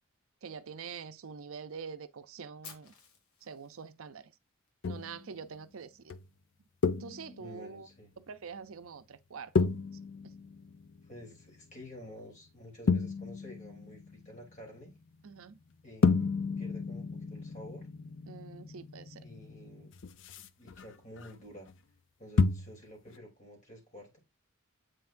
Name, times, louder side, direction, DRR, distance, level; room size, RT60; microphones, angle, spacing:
voice 1, 0.4-2.9 3.4-4.3 4.9-6.1 7.0-7.9 8.2-9.7 15.2-15.6 18.3-19.2, right 6 dB, 70° right, 0.6 m, -45 dB
Fire, 2.6-4.7, left 6 dB, 90° left, 1.8 m, -53 dB
sound 1, 4.8-5.3 6.1-6.3 6.8-7.6 9.6-11.7 12.9-14.7 16.0-21.3 21.6-21.7 22.4-22.8 23.1-23.2, left 4 dB, 55° left, 0.5 m, -32 dB
voice 2, 7.4-8.1 11.1-14.9 15.8-17.9 19.1-19.9 20.6-21.7 22.2-24.2, equal, 35° left, 3.1 m, -50 dB
8.0 x 5.7 x 2.6 m
head